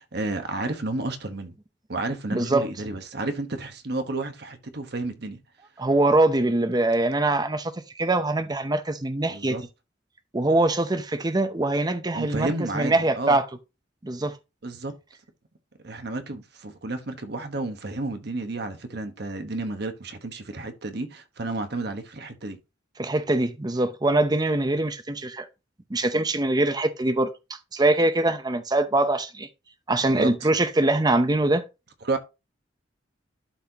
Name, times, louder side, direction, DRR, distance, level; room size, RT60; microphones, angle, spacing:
voice 1, 0.0-1.5 1.9-5.4 9.3-9.6 12.1-13.4 14.6-14.9 15.8-22.6 30.1-30.5 32.0-32.2, right 2 dB, 60° right, 1.2 m, -31 dB
voice 2, 2.3-2.7 5.8-9.6 10.3-13.5 14.0-14.4 23.0-25.5 25.9-29.5 29.9-31.6, right 2 dB, 20° right, 0.7 m, -23 dB
11.5 x 4.2 x 2.9 m
head